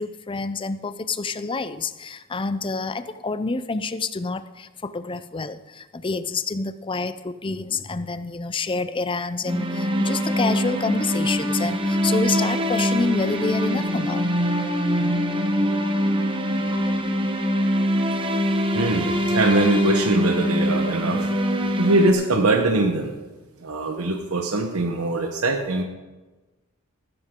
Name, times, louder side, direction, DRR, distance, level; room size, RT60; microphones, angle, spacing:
voice 1, 0.0-14.3, left 3 dB, 25° left, 13 dB, 0.5 m, -28 dB
sound 1, 9.4-22.1, equal, 25° right, 1.1 m, -23 dB
voice 2, 18.7-21.3 21.6-23.1 23.6-25.8, right 2 dB, 75° right, 4 dB, 1.1 m, -22 dB
15.0 x 13.0 x 3.8 m, 1.2 s
head